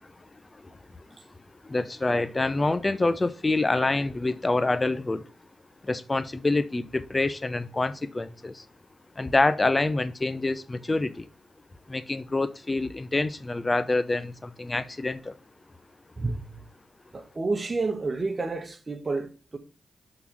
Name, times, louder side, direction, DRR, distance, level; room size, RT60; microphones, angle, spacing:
voice 1, 1.6-5.3 5.8-8.6 9.2-11.3 11.9-15.3, left 2 dB, 30° left, 0.7 m, -26 dB
voice 2, 16.2-16.6 17.1-19.6, right 3 dB, 40° right, 1.2 m, -30 dB
5.8 x 4.0 x 6.1 m
supercardioid pair, 45°, 0 cm